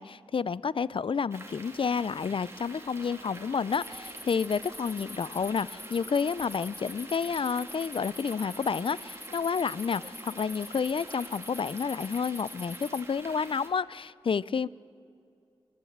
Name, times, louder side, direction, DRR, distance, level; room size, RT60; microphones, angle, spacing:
voice 1, 0.0-14.7, left 6 dB, 60° left, 20 dB, 0.4 m, -30 dB
sound 1, 1.3-13.7, right 2 dB, 25° right, 2.5 m, -46 dB
sound 2, 3.7-13.0, left 1 dB, 15° left, 0.8 m, -46 dB
27.0 x 12.5 x 8.0 m, 2.5 s
wide cardioid pair, 75°, 10 cm